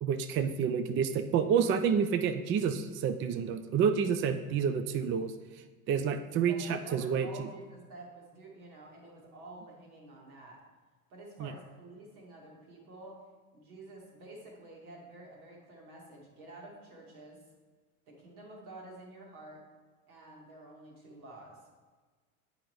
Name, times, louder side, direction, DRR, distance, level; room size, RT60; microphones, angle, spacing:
voice 1, 0.0-7.5 11.4-11.5, right 7 dB, 30° right, 8 dB, 0.4 m, -29 dB
voice 2, 6.2-10.6 11.1-13.2 13.5-17.4 18.1-19.6 20.1-21.6, right 2 dB, 80° right, -2 dB, 1.9 m, -49 dB
8.4 x 5.1 x 3.1 m, 1.4 s
hypercardioid pair, 80°, 43 cm